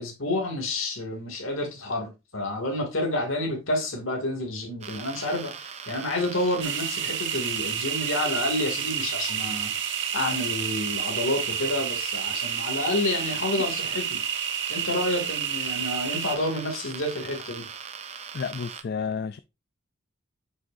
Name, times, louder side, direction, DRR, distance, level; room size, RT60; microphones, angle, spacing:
voice 1, 0.0-9.7 10.1-14.2 14.7-17.7, left 1 dB, 70° left, 2.4 m, -29 dB
sound 1, 4.8-18.8, right 7 dB, 30° right, 0.6 m, -40 dB
sound 2, 6.6-16.4, right 8 dB, 55° right, 1.1 m, -30 dB
voice 2, 18.3-19.4, left 5 dB, 45° left, 0.3 m, -31 dB
7.8 x 6.2 x 2.6 m
head